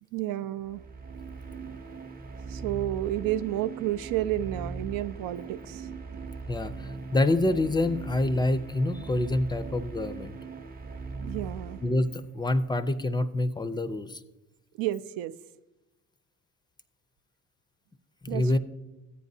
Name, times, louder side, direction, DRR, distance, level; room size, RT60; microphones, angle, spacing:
voice 1, 0.1-0.8 2.5-6.3 11.2-11.8 14.7-15.3 18.3-18.6, right 14 dB, 80° right, 0.5 m, -31 dB
sound 1, 0.6-12.3, right 4 dB, 25° right, 0.7 m, -40 dB
voice 2, 6.5-10.4 11.8-14.2 18.2-18.6, left 2 dB, 15° left, 0.4 m, -27 dB
13.5 x 8.4 x 2.7 m
cardioid pair, 100°, 34 cm